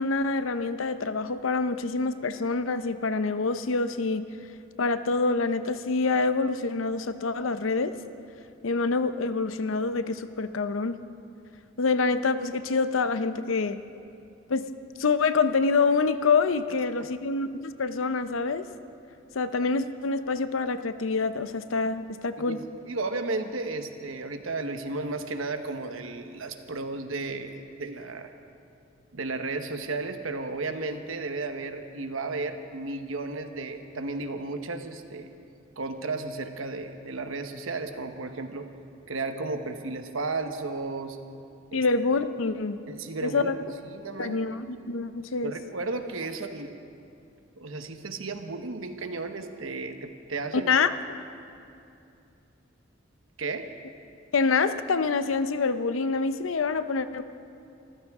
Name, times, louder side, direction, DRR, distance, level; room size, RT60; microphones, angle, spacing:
voice 1, 0.0-4.3 4.8-8.0 8.6-11.0 11.8-13.8 14.5-14.7 15.0-18.6 19.3-22.6 41.7-42.8 43.2-43.6 44.2-45.5 50.7-50.9 54.3-57.2, left 4 dB, 80° left, 11 dB, 0.7 m, -26 dB
voice 2, 22.4-28.3 29.1-35.3 35.8-38.7 39.1-41.2 41.7-41.8 42.9-43.5 43.8-44.4 45.4-46.7 47.6-50.7 53.4-53.7, right 3 dB, 85° right, 7 dB, 1.1 m, -34 dB
25.0 x 14.5 x 3.6 m, 2.6 s
head